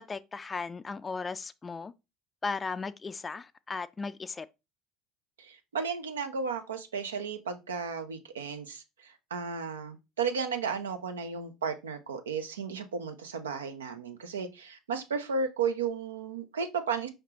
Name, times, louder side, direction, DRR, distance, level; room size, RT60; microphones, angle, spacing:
voice 1, 0.0-1.9 2.4-4.5, left 4 dB, 25° left, 0.3 m, -36 dB
voice 2, 5.4-17.1, right 5 dB, 90° right, 0.6 m, -34 dB
4.9 x 3.3 x 2.9 m
hypercardioid pair, 70°, 0 cm